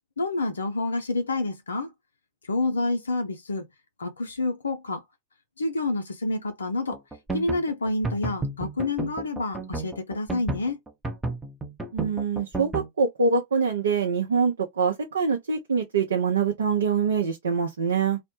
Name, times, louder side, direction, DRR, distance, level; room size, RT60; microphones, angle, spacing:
voice 1, 0.2-1.9 2.5-3.7 4.0-5.0 5.6-7.0 7.3-10.8, left 2 dB, 85° left, 0.4 m, -28 dB
sound 1, 6.9-12.9, right 3 dB, 10° right, 0.6 m, -32 dB
voice 2, 11.9-18.2, right 5 dB, 75° right, 0.5 m, -24 dB
2.1 x 2.0 x 2.9 m
hypercardioid pair, 100°, 0 cm